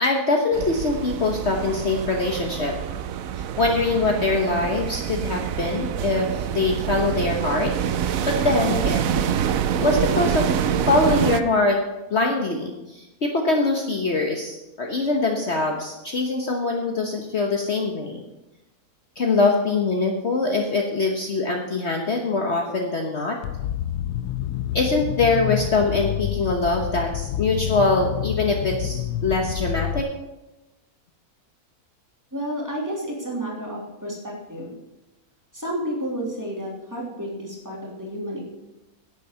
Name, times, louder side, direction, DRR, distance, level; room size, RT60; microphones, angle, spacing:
voice 1, 0.0-2.8 3.3-7.7 8.0-9.3 9.8-10.5 10.8-11.8 12.1-18.2 19.2-23.4 24.7-30.1, left 3 dB, 50° left, 2 dB, 1.4 m, -23 dB
sound 1, 0.5-11.4, right 9 dB, 65° right, 1.1 m, -26 dB
sound 2, 23.4-30.0, left 12 dB, 85° left, 1.1 m, -28 dB
voice 2, 32.3-34.7 35.5-38.4, equal, 10° right, -4 dB, 3.3 m, -31 dB
10.5 x 8.6 x 6.8 m, 1.0 s
omnidirectional pair, 1.6 m